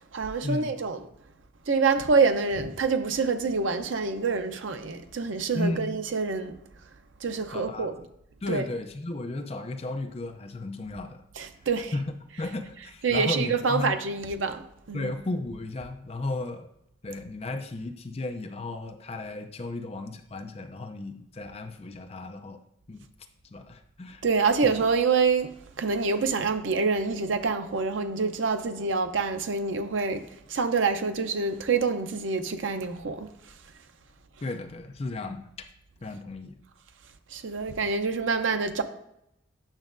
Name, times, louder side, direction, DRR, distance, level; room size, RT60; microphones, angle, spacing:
voice 1, 0.1-1.1 1.7-6.6 7.2-8.0 8.5-8.6 11.4-11.9 13.0-15.1 24.2-25.5 25.8-30.2 30.5-33.3 37.3-38.8, right 4 dB, 85° right, 0.7 m, -26 dB
voice 2, 5.5-6.0 7.5-7.9 8.4-11.2 11.9-14.0 14.9-16.7 17.0-22.6 22.9-23.1 23.5-24.2 24.6-24.7 34.4-35.7 36.0-36.6, left 2 dB, 30° left, 0.5 m, -34 dB
8.8 x 6.2 x 2.6 m
head